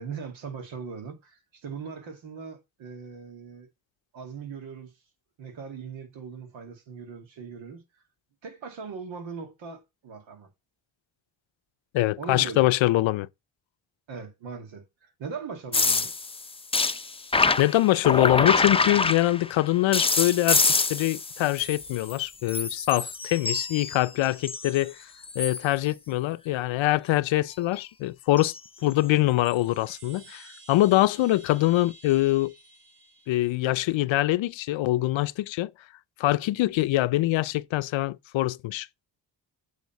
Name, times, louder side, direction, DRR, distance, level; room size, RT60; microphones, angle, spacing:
voice 1, 0.0-3.7 4.1-4.9 5.4-7.8 8.4-10.5 12.2-12.7 14.1-16.1, right 5 dB, 85° right, 2.1 m, -40 dB
voice 2, 11.9-13.3 17.6-25.1 25.4-28.5 28.8-32.5 33.3-35.7 36.2-38.9, left 16 dB, 90° left, 0.6 m, -24 dB
sound 1, 15.7-19.6 19.9-22.2 22.5-24.8 25.2-25.7 28.4-28.6 29.5-29.6, left 4 dB, 15° left, 0.5 m, -26 dB
Chime, 29.3-34.0, right 2 dB, 70° right, 2.7 m, -53 dB
8.4 x 3.7 x 6.8 m
cardioid pair, 75°, 45 cm